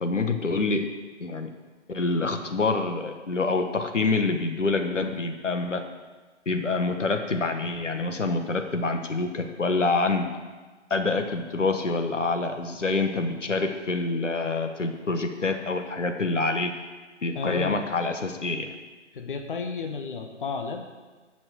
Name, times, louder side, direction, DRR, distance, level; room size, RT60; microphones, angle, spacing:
voice 1, 0.0-0.9 1.2-1.5 1.9-5.8 6.4-10.2 10.9-16.7 17.2-18.7, left 3 dB, 85° left, 6 dB, 1.4 m, -26 dB
voice 2, 17.3-17.8 19.1-20.8, left 4 dB, 45° left, 4 dB, 1.1 m, -32 dB
12.5 x 6.1 x 6.3 m, 1.3 s
figure-of-eight pair, 150°, 36 cm